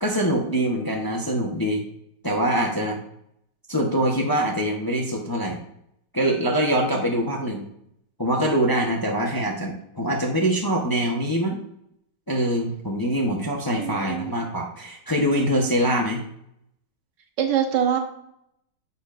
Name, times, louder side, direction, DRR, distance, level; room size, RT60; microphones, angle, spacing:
voice 1, 0.0-1.8 2.2-3.0 3.7-5.6 6.1-7.7 8.2-11.6 12.3-16.2, right 1 dB, 15° left, 0 dB, 0.8 m, -24 dB
voice 2, 13.8-14.3 17.4-18.0, right 9 dB, 80° right, 5 dB, 1.7 m, -24 dB
10.5 x 6.8 x 2.6 m, 0.75 s
omnidirectional pair, 1.9 m